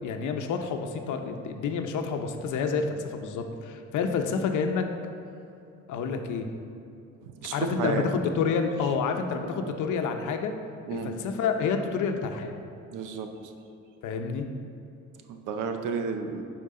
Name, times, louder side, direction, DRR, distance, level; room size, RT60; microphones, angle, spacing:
voice 1, 0.0-4.9 5.9-6.5 7.5-10.5 10.9-12.6 14.0-14.5, left 5 dB, 80° left, 5 dB, 0.8 m, -29 dB
voice 2, 7.2-8.1 9.6-9.8 10.9-11.1 12.9-13.3 15.3-16.4, right 5 dB, 90° right, 6 dB, 0.8 m, -32 dB
11.0 x 4.5 x 3.8 m, 2.7 s
cardioid pair, 90°, 30 cm